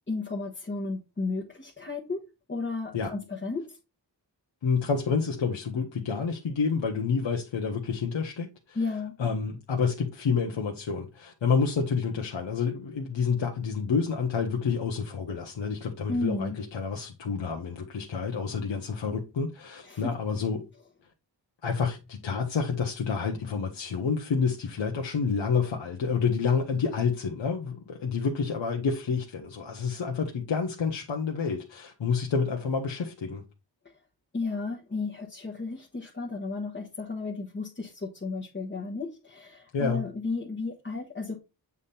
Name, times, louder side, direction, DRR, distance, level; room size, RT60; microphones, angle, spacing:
voice 1, 0.0-2.2 2.5-3.8 8.7-9.2 16.1-16.6 19.8-20.1 33.8-33.9 34.3-41.4, left 3 dB, 25° left, 1.2 m, -33 dB
voice 2, 4.6-8.8 9.2-20.7 21.6-33.4 39.7-40.0, left 5 dB, 80° left, 1.1 m, -29 dB
8.2 x 3.6 x 4.1 m
wide cardioid pair, 130°, 44 cm